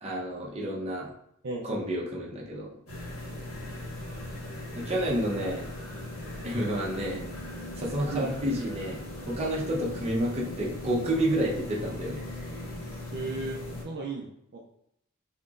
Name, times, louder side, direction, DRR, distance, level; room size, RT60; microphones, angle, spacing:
voice 1, 0.0-1.1 1.7-2.7 4.7-5.7 6.4-7.3 7.8-9.0 9.3-12.2, right 1 dB, 30° right, -3 dB, 0.8 m, -29 dB
sound 1, 2.9-13.8, left 1 dB, 70° left, 1.4 m, -39 dB
voice 2, 13.1-13.6 13.8-14.6, right 3 dB, 50° right, -2 dB, 0.4 m, -35 dB
4.3 x 2.9 x 2.5 m, 0.75 s
head